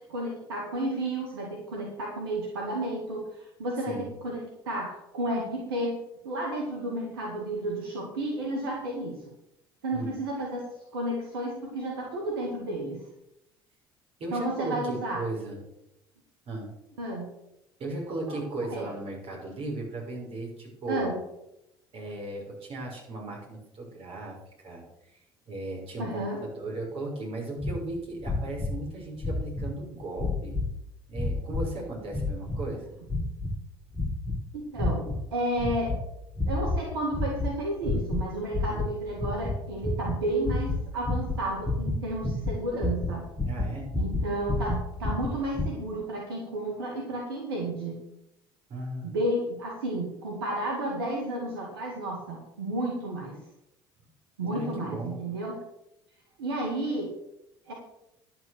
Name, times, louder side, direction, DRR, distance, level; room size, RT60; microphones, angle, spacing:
voice 1, 0.1-5.9 6.2-9.2 9.8-10.6 10.9-13.0 14.3-15.2 17.0-17.3 18.3-18.4 18.7-18.9 20.9-21.2 26.0-26.4 34.5-35.9 36.5-43.2 44.0-48.0 49.0-53.4 54.4-55.6 56.4-57.1 57.7-57.8, right 1 dB, 85° right, -1 dB, 2.3 m, -32 dB
voice 2, 14.2-15.6 16.5-16.7 17.8-21.2 21.9-25.2 25.5-30.6 31.1-32.9 38.7-38.8 43.5-43.9 48.7-49.2 54.5-55.1, right 2 dB, 50° right, -1 dB, 6.0 m, -36 dB
sound 1, 27.6-27.8 28.2-28.8 29.2-29.7 30.2-30.7 31.1-31.7 32.1-32.7 33.1-33.6 33.9-34.4 34.8-35.2 35.6-36.0 36.3-36.8 37.1-37.5 37.8-38.3 38.5-45.7, left 2 dB, 20° left, 2.0 m, -30 dB
11.0 x 8.7 x 6.6 m, 0.84 s
hypercardioid pair, 65°, 12 cm